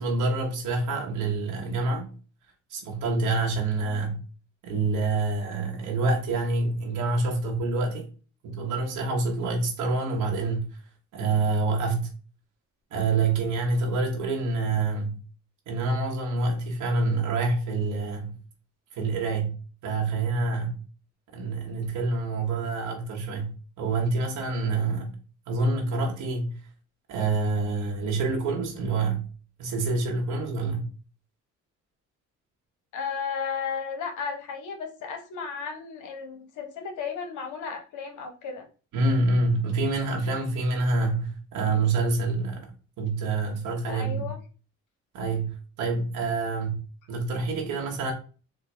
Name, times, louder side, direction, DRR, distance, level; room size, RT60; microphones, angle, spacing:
voice 1, 0.0-2.1 2.7-4.2 4.6-8.1 8.4-10.7 11.1-12.1 12.9-15.2 15.7-18.4 18.9-20.8 21.3-25.1 25.5-26.6 27.1-29.3 29.6-30.9 38.9-42.7 43.0-44.3 45.1-46.8 47.1-48.1, right 3 dB, 85° right, 1.0 m, -27 dB
voice 2, 32.9-38.7 43.9-44.4, left 6 dB, 80° left, 0.9 m, -34 dB
4.1 x 2.1 x 3.2 m
cardioid pair, 90°, 30 cm